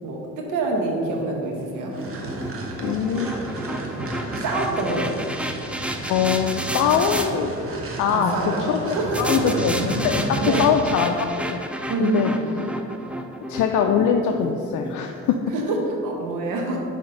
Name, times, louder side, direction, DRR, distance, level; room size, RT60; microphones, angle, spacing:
voice 1, 0.0-1.9 4.3-5.2 8.1-9.5 10.4-10.7 11.9-12.5 15.5-16.8, right 2 dB, 90° right, 0 dB, 1.0 m, -26 dB
sound 1, 1.1-7.3 9.1-15.4, right 1 dB, 5° right, 0.3 m, -32 dB
sound 2, 1.9-10.9, right 2 dB, 45° right, 1.0 m, -32 dB
voice 2, 2.8-3.3 6.1-7.5 8.0-8.3 8.7-12.3 13.5-15.4, left 7 dB, 75° left, 4 dB, 0.5 m, -22 dB
5.7 x 3.5 x 5.1 m, 2.7 s
cardioid pair, 90°, 30 cm